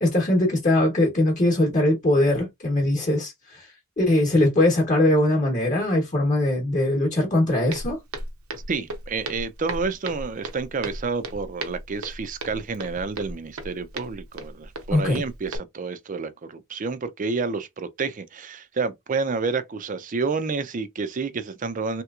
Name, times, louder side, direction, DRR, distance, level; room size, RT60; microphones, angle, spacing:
voice 1, 0.0-3.7 4.0-8.0 14.9-15.2, left 1 dB, 35° left, 0.9 m, -21 dB
Walk footsteps, 7.7-15.6, right 2 dB, 75° right, 0.7 m, -36 dB
voice 2, 8.7-22.0, right 4 dB, 35° right, 0.4 m, -29 dB
3.2 x 2.9 x 2.3 m
head